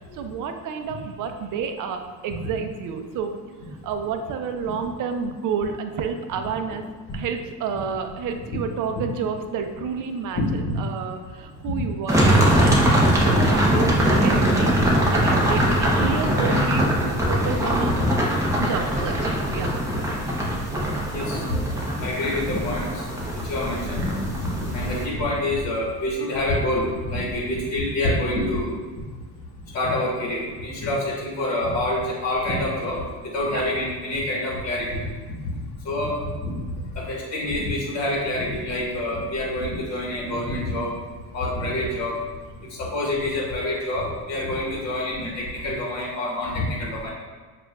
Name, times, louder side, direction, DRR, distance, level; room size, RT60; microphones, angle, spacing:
voice 1, 0.1-3.4 3.6-6.8 7.1-17.9 18.6-19.8 33.5-33.6, right 6 dB, 45° right, 6 dB, 0.5 m, -30 dB
sound 1, 12.1-25.1, right 1 dB, 5° right, 0.7 m, -22 dB
voice 2, 21.1-21.4 21.7-23.1 23.3-28.7 29.7-35.0 35.8-36.5 36.9-40.9 41.3-42.2 42.7-47.1, left 1 dB, 35° left, -3 dB, 1.3 m, -27 dB
6.8 x 2.5 x 2.2 m, 1.4 s
supercardioid pair, 100°, 47 cm